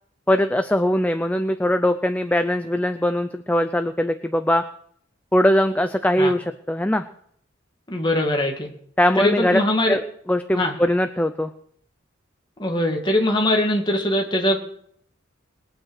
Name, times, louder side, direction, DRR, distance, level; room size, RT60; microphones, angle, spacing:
voice 1, 0.3-4.6 5.3-7.0 9.0-9.6 9.9-10.0 10.3-11.5, left 1 dB, 5° left, 8 dB, 0.5 m, -21 dB
voice 2, 7.9-8.7 9.2-10.0 10.6-10.7 12.6-14.6, left 1 dB, 25° left, 1 dB, 2.3 m, -21 dB
21.0 x 8.8 x 6.5 m, 0.66 s
head